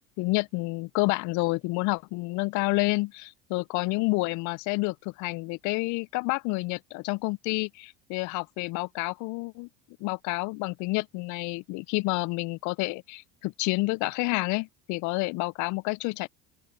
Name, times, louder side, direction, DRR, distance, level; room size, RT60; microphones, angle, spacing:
voice 1, 0.2-9.7 10.0-16.3, left 25 dB, 55° left, 0.5 m, -29 dB
open air
hypercardioid pair, 75°, 36 cm